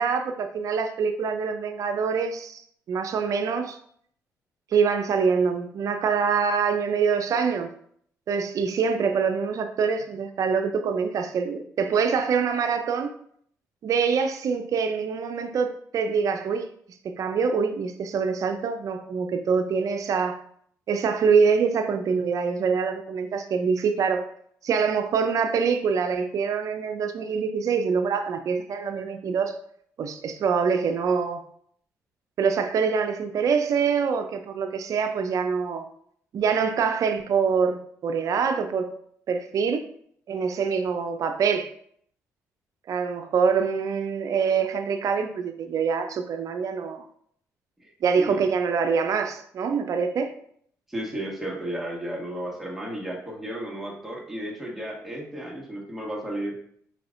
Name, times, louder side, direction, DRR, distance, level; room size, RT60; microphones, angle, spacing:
voice 1, 0.0-2.6 2.9-3.8 4.7-7.7 8.3-13.1 13.8-16.7 17.0-20.4 20.9-24.3 24.6-29.5 30.0-31.4 32.4-35.9 36.3-38.9 39.3-39.8 40.3-41.7 42.9-47.0 48.0-50.3, right 6 dB, 60° right, 0.5 m, -25 dB
voice 2, 50.9-56.6, right 1 dB, 5° right, 1.6 m, -33 dB
4.7 x 3.2 x 2.6 m
supercardioid pair, 60°, 6 cm